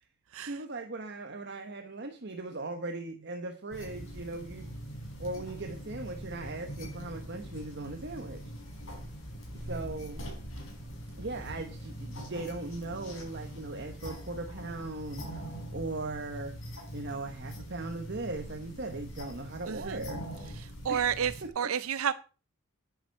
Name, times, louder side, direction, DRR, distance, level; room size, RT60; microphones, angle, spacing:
voice 1, 0.4-4.8 5.2-8.4 9.6-10.3 11.2-16.5 16.9-20.3 20.9-21.1, right 2 dB, 55° right, 1.2 m, -39 dB
sound 1, 3.7-21.5, equal, 65° left, 5.7 m, -42 dB
voice 2, 19.7-20.0 20.8-22.1, right 8 dB, 80° right, 0.5 m, -30 dB
10.5 x 10.0 x 4.6 m
head